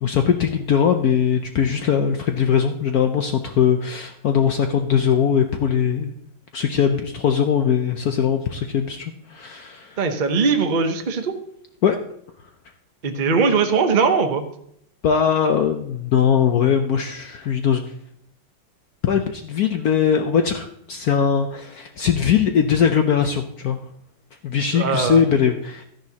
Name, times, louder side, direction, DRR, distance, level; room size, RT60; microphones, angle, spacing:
voice 1, 0.0-6.1 6.5-10.0 11.8-12.0 15.0-17.9 19.0-23.8 24.4-25.8, left 7 dB, 75° left, 6 dB, 0.8 m, -20 dB
voice 2, 10.0-11.3 13.0-14.4 24.6-25.2, right 5 dB, 60° right, 5 dB, 0.5 m, -20 dB
12.5 x 10.5 x 2.8 m, 0.71 s
omnidirectional pair, 2.3 m